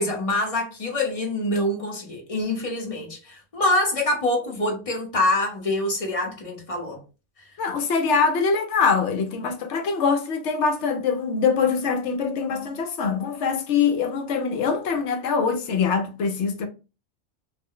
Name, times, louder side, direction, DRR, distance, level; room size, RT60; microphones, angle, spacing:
voice 1, 0.0-7.0, left 1 dB, 30° left, 0.8 m, -25 dB
voice 2, 7.6-16.7, left 5 dB, 70° left, 0.9 m, -23 dB
2.5 x 2.0 x 3.7 m
omnidirectional pair, 1.3 m